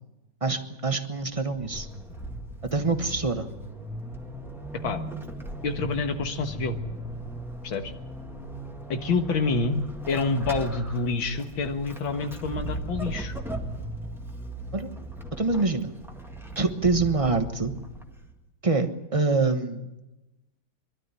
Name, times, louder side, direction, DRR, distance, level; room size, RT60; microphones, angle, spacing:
voice 1, 0.4-1.9 2.7-3.5 14.7-14.9 15.4-15.9 16.6-17.7 18.6-19.9, right 3 dB, 20° right, 8 dB, 1.0 m, -25 dB
Vehicle / Accelerating revving vroom / Squeak, 1.2-18.4, right 1 dB, ahead, 1.7 m, -38 dB
voice 2, 5.6-6.8 7.6-7.9 8.9-13.3, left 3 dB, 75° left, 6 dB, 2.2 m, -27 dB
25.0 x 12.5 x 9.6 m, 1.0 s
omnidirectional pair, 2.2 m